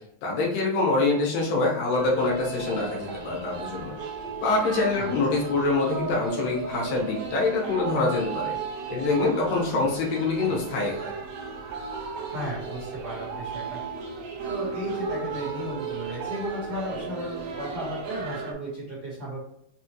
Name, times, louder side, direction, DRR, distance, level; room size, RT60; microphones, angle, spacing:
voice 1, 0.2-4.0 4.4-8.6 8.9-11.1, left 3 dB, 80° left, -2 dB, 2.7 m, -25 dB
sound 1, 2.0-18.5, right 5 dB, 75° right, 1.6 m, -35 dB
voice 2, 12.3-13.8 14.5-19.4, equal, 50° right, -7 dB, 2.0 m, -35 dB
6.0 x 2.5 x 2.9 m, 0.75 s
omnidirectional pair, 4.1 m